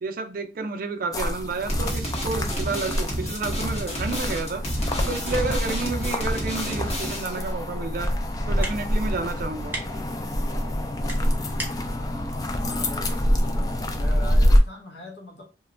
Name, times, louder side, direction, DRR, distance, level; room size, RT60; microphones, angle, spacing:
voice 1, 0.0-4.6 5.1-8.1 8.5-9.7, right 3 dB, 50° right, 7 dB, 0.4 m, -30 dB
sound 1, 1.1-14.6, equal, 20° left, 0.3 m, -26 dB
sound 2, 1.7-7.4, equal, 40° left, 0.8 m, -30 dB
sound 3, 7.4-14.2, right 2 dB, 10° right, 0.7 m, -42 dB
voice 2, 12.6-13.7 14.0-15.4, equal, 70° left, -1 dB, 0.7 m, -41 dB
2.9 x 2.2 x 2.4 m, 0.32 s
head